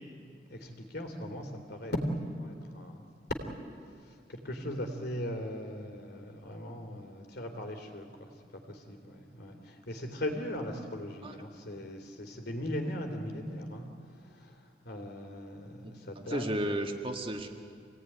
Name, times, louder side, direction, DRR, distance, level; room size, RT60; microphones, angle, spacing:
voice 1, 0.5-3.1 4.1-8.3 8.6-16.5, equal, 60° left, 5 dB, 3.2 m, -39 dB
voice 2, 15.8-17.5, right 1 dB, 30° right, 3 dB, 2.0 m, -34 dB
26.5 x 18.0 x 9.9 m, 2.2 s
head